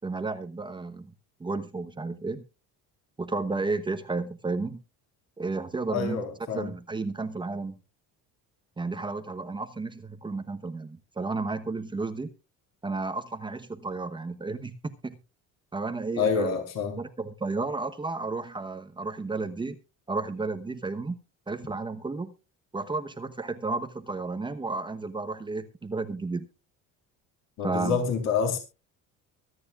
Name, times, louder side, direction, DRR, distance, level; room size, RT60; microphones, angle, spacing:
voice 1, 0.0-1.1 1.4-2.4 3.2-4.8 5.4-6.2 6.5-7.8 8.8-12.3 12.8-15.2 15.7-16.5 17.0-19.8 20.1-21.2 21.5-22.3 22.7-26.5 27.6-28.1, right 3 dB, 15° right, 9 dB, 1.0 m, -32 dB
voice 2, 5.9-6.7 16.2-17.0 27.6-28.6, left 5 dB, 55° left, 4 dB, 3.9 m, -27 dB
24.0 x 9.5 x 2.4 m, 0.30 s
cardioid pair, 145°, 32 cm